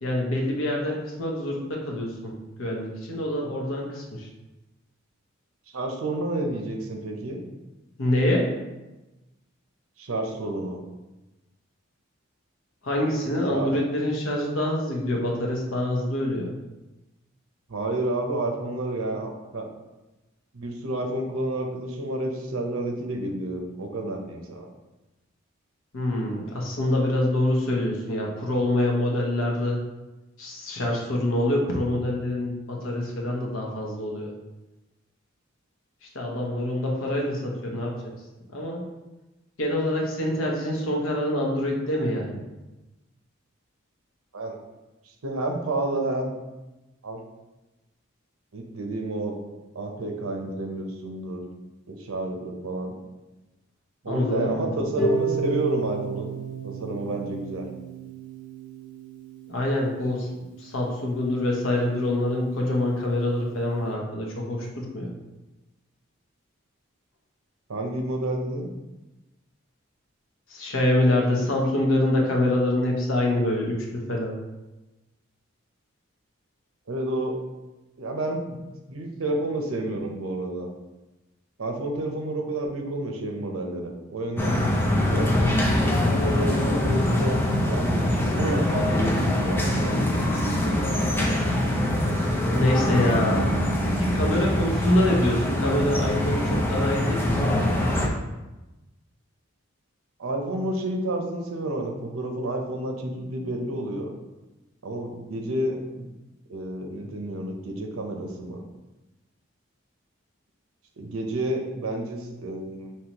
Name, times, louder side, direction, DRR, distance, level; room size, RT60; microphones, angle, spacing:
voice 1, 0.0-2.3 2.6-4.3 8.0-8.5 12.8-16.5 25.9-29.8 30.4-34.3 36.0-38.1 38.5-38.8 39.6-42.4 54.1-54.7 59.5-60.3 60.6-65.1 70.5-74.3 92.5-93.5 93.8-97.8, left 1 dB, 75° left, -1 dB, 1.0 m, -25 dB
voice 2, 5.7-7.4 10.0-10.8 13.5-13.8 17.7-19.7 20.5-24.7 44.3-44.6 45.2-46.3 47.0-47.2 48.5-49.4 49.7-51.4 51.9-52.9 54.0-56.3 56.6-57.7 67.7-68.7 76.9-77.4 78.0-78.6 78.9-80.7 81.6-85.4 86.0-90.0 100.2-104.1 104.8-106.1 106.5-108.6 111.0-112.9, right 1 dB, 90° right, 2 dB, 0.7 m, -30 dB
Harp, 55.0-61.0, right 4 dB, 25° right, 0.9 m, -32 dB
sound 1, 84.4-98.1, left 1 dB, 10° left, 0.5 m, -24 dB
5.4 x 2.9 x 2.9 m, 1.1 s
head